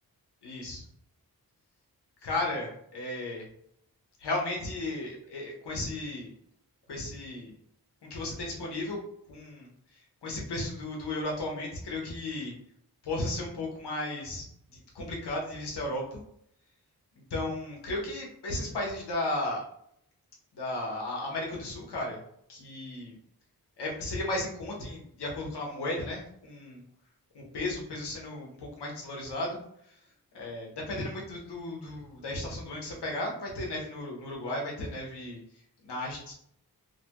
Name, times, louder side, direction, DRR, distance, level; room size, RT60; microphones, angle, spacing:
voice 1, 0.4-0.8 2.2-3.4 4.2-6.3 6.9-7.5 8.1-9.0 9.3-9.7 10.2-12.5 13.0-14.4 14.9-16.2 17.3-19.6 20.5-22.2 22.5-23.2 23.8-26.8 27.3-29.6 30.3-35.4 35.8-36.3, left 2 dB, 90° left, -1 dB, 0.9 m, -34 dB
2.8 x 2.2 x 2.9 m, 0.70 s
cardioid pair, 60°, 39 cm